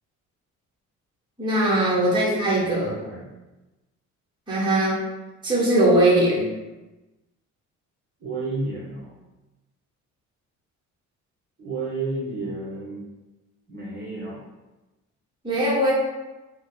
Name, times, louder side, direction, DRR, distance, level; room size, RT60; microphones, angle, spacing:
voice 1, 1.4-3.0 4.5-5.0 5.4-6.5 15.4-15.9, right 1 dB, 15° right, -7 dB, 1.1 m, -20 dB
voice 2, 2.5-3.3 8.2-9.1 11.6-13.1 13.7-14.4, right 3 dB, 35° right, -7 dB, 0.9 m, -32 dB
4.9 x 2.1 x 3.8 m, 1.1 s
cardioid pair, 170°, 29 cm